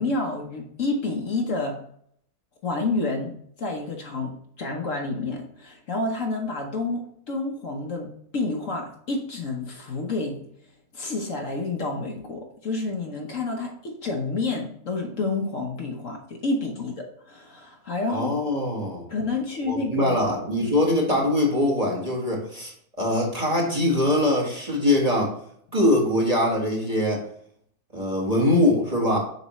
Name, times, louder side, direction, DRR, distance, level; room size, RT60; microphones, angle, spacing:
voice 1, 0.0-1.8 2.6-3.3 3.6-10.4 10.9-18.3 19.1-20.2, left 3 dB, 55° left, 1 dB, 1.2 m, -29 dB
voice 2, 18.1-19.1 19.7-25.3 25.7-27.2 27.9-29.2, left 1 dB, 25° right, -1 dB, 1.5 m, -22 dB
7.0 x 5.1 x 3.1 m, 0.66 s
omnidirectional pair, 1.7 m